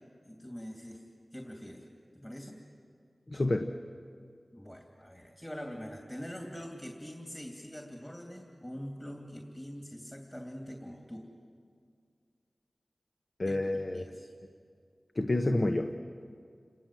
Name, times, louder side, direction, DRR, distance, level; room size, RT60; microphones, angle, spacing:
voice 1, 0.2-1.0 1.3-1.8 2.1-2.6 4.5-11.3 13.5-13.6 13.9-14.3, equal, 20° left, 1 dB, 2.9 m, -44 dB
voice 2, 3.3-3.7 13.4-14.1 15.1-15.9, left 2 dB, 50° left, 5 dB, 1.1 m, -29 dB
29.5 x 18.5 x 7.7 m, 2.2 s
cardioid pair, 40°, 0 cm